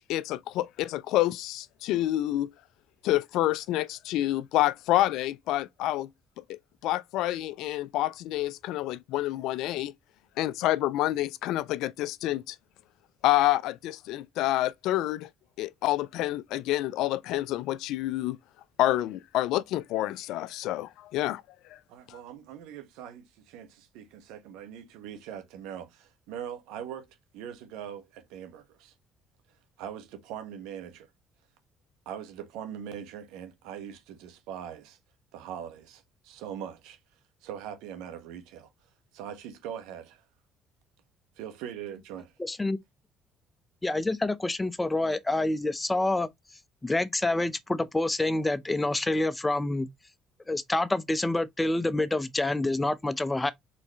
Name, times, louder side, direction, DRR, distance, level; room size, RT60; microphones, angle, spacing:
voice 1, 0.1-2.5 3.0-6.1 6.4-9.9 10.4-12.6 13.2-15.3 15.6-18.4 18.8-21.4 21.7-21.8 22.1-22.2, left 15 dB, 75° left, 0.3 m, -28 dB
voice 2, 21.9-27.1 27.3-28.9 29.8-31.1 32.0-35.0 35.3-37.0 37.4-38.7 39.1-40.2 41.4-42.3, right 9 dB, 80° right, 1.3 m, -41 dB
voice 3, 42.4-42.8 43.8-46.3 46.8-49.9 50.5-53.5, left 2 dB, 15° left, 0.7 m, -27 dB
4.3 x 4.0 x 3.0 m
hypercardioid pair, 65°, 0 cm